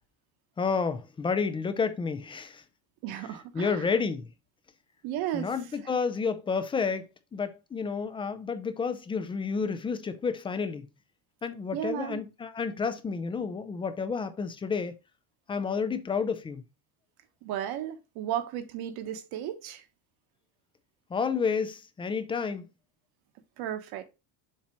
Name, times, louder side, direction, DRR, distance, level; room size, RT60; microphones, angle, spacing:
voice 1, 0.6-2.6 3.5-4.3 5.3-10.9 11.4-14.9 15.5-16.6 21.1-22.6, left 5 dB, 15° left, 0.3 m, -30 dB
voice 2, 3.0-3.9 5.0-5.5 11.7-12.2 17.4-19.8 23.6-24.0, right 11 dB, 60° right, 1.2 m, -34 dB
7.3 x 2.9 x 4.5 m
cardioid pair, 155°, 42 cm